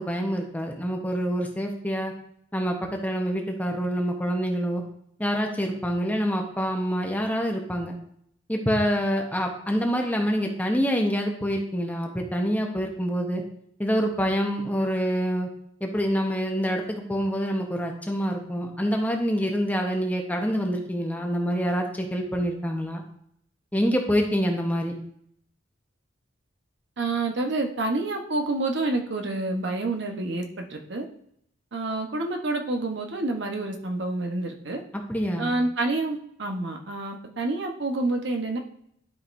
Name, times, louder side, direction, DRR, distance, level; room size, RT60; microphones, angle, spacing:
voice 1, 0.0-2.1 2.5-4.8 5.2-8.0 8.5-13.4 13.8-15.5 15.8-23.0 23.7-25.0 35.1-35.6, equal, 10° left, 2 dB, 1.0 m, -26 dB
voice 2, 27.0-31.0 31.7-34.8 35.4-38.6, right 2 dB, 65° right, 3 dB, 1.1 m, -28 dB
12.0 x 5.3 x 2.6 m, 0.70 s
head